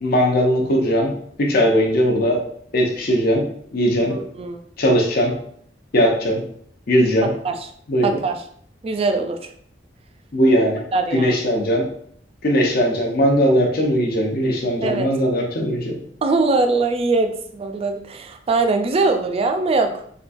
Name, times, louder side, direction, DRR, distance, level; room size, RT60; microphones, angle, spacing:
voice 1, 0.0-1.1 1.4-2.4 2.7-3.4 3.7-4.2 4.8-5.4 5.9-6.4 6.9-7.3 7.9-8.1 10.3-10.8 11.1-11.9 12.4-16.0, equal, 55° left, 0 dB, 0.6 m, -19 dB
voice 2, 4.0-4.6 7.2-7.7 8.0-8.4 8.8-9.5 10.9-11.3 14.8-15.1 16.2-20.0, right 3 dB, 35° right, 5 dB, 0.3 m, -22 dB
3.7 x 2.2 x 2.5 m, 0.62 s
head